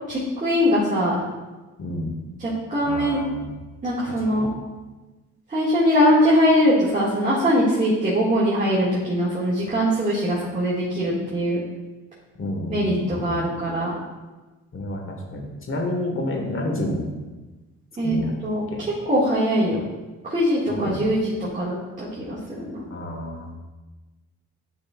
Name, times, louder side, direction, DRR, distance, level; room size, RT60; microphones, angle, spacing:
voice 1, 0.1-1.2 2.4-3.2 3.8-4.5 5.5-11.6 12.7-13.9 18.0-18.2 18.4-18.6 19.1-19.8 20.2-22.8, equal, 25° right, -8 dB, 2.0 m, -21 dB
voice 2, 1.8-2.1 2.8-3.5 4.1-4.5 12.4-13.4 14.7-17.1 18.0-18.3 18.7-18.8 20.7-21.1 22.9-23.5, left 1 dB, 45° left, 1 dB, 1.5 m, -30 dB
10.5 x 5.4 x 2.4 m, 1.2 s
cardioid pair, 90°, 30 cm